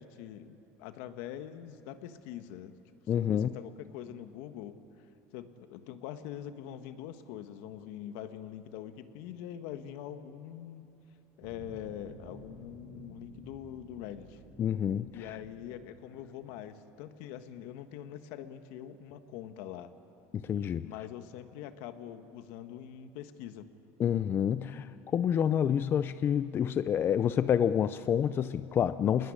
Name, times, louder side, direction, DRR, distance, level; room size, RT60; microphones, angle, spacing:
voice 1, 0.0-2.7 3.2-4.7 5.3-10.9 11.4-14.4 15.1-19.9 20.8-23.7, left 10 dB, 70° left, 9 dB, 1.6 m, -44 dB
voice 2, 3.1-3.5 14.6-15.4 20.3-20.9 24.0-29.3, left 9 dB, 30° left, 13 dB, 0.5 m, -28 dB
sound 1, 11.4-16.7, right 1 dB, 30° right, 4.0 m, -53 dB
26.0 x 20.5 x 10.0 m, 2.8 s
cardioid pair, 140°, 7 cm